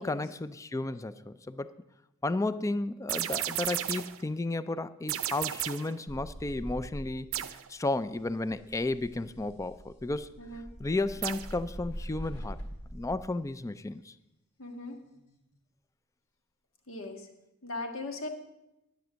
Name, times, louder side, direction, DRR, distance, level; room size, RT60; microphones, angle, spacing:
voice 1, 0.0-1.7 2.2-10.3 10.8-12.6 12.9-14.1, left 2 dB, 15° left, 14 dB, 0.4 m, -33 dB
sound 1, 3.1-4.2 5.1-6.0 7.3-7.7 11.2-11.6, right 12 dB, 70° right, 0.5 m, -33 dB
sound 2, 6.1-7.5 7.8-13.2 14.9-15.4, equal, 90° left, 2.6 m, -43 dB
voice 2, 14.6-15.0 16.9-17.3 17.6-18.3, left 2 dB, 65° left, 4 dB, 1.6 m, -39 dB
11.0 x 9.2 x 6.3 m, 0.93 s
head